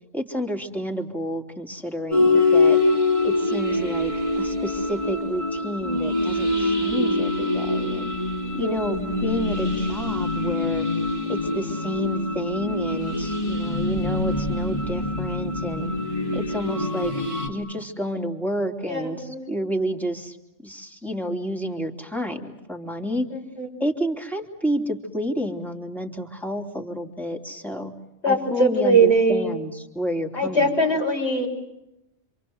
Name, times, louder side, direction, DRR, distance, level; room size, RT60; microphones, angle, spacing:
voice 1, 0.1-2.8 3.2-8.1 8.5-10.9 11.3-15.9 16.3-17.1 17.5-20.4 20.6-23.3 23.8-27.9 28.3-30.7, equal, ahead, 3 dB, 3.0 m, -30 dB
sound 1, 2.1-17.5, left 2 dB, 25° left, 3.7 m, -24 dB
voice 2, 18.9-19.5 23.3-23.7 28.2-29.6 30.3-31.5, right 2 dB, 65° left, 0 dB, 7.1 m, -21 dB
27.0 x 27.0 x 7.9 m, 0.89 s
omnidirectional pair, 1.2 m